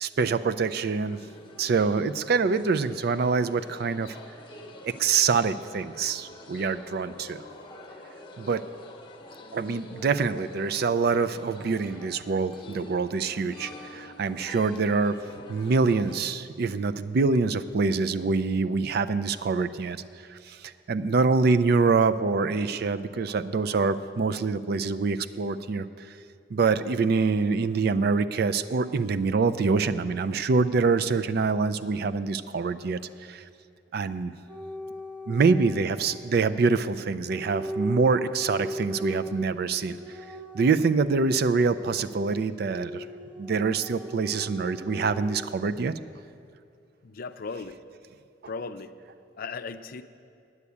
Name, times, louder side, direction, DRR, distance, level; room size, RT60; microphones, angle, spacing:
voice 1, 0.0-1.2 1.6-4.1 4.8-7.4 8.4-8.6 9.5-15.2 15.5-20.0 20.5-20.6 20.9-25.9 26.5-33.0 33.3-33.4 33.9-34.3 35.3-40.0 40.5-43.0 43.4-45.9, right 4 dB, 60° right, 12 dB, 0.4 m, -25 dB
sound 1, 0.8-16.2, left 1 dB, 25° left, 0.9 m, -46 dB
sound 2, 34.5-36.5 37.3-45.5, equal, 5° right, 0.6 m, -38 dB
voice 2, 47.0-47.8 48.5-48.9 49.4-50.0, left 4 dB, 55° left, 10 dB, 0.5 m, -36 dB
9.6 x 8.1 x 8.4 m, 2.4 s
head